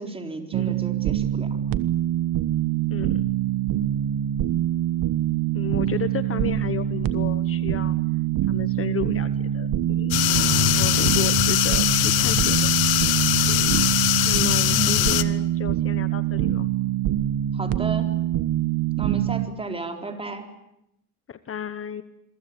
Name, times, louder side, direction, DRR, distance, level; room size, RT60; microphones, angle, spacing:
voice 1, 0.0-1.6 5.8-6.0 14.7-15.2 17.5-18.2 19.0-20.5, right 3 dB, 15° right, 5 dB, 4.2 m, -34 dB
sound 1, 0.5-19.5, right 12 dB, 65° right, 1.4 m, -24 dB
voice 2, 2.9-3.3 5.5-8.0 8.5-10.3 10.7-12.7 13.4-13.9 14.2-16.7 21.3-22.0, left 9 dB, 35° left, 12 dB, 1.2 m, -33 dB
sound 2, 10.1-15.2, left 15 dB, 80° left, 1.5 m, -21 dB
27.5 x 23.5 x 8.8 m, 0.81 s
cardioid pair, 130°, 36 cm